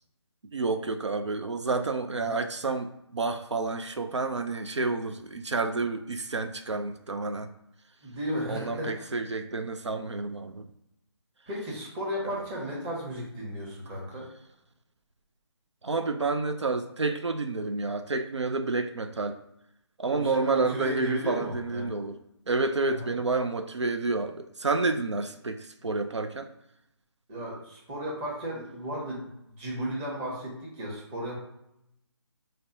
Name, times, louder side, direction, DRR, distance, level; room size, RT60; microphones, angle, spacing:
voice 1, 0.5-7.5 8.5-10.7 15.8-19.4 20.0-22.2 22.5-26.5, right 3 dB, 90° right, 7 dB, 0.4 m, -29 dB
voice 2, 8.0-9.1 11.5-14.3 20.1-21.9 22.9-23.1 27.3-29.3 29.6-31.4, equal, 15° right, -4 dB, 0.9 m, -35 dB
5.2 x 2.1 x 2.6 m, 0.82 s
figure-of-eight pair, 150°, 15 cm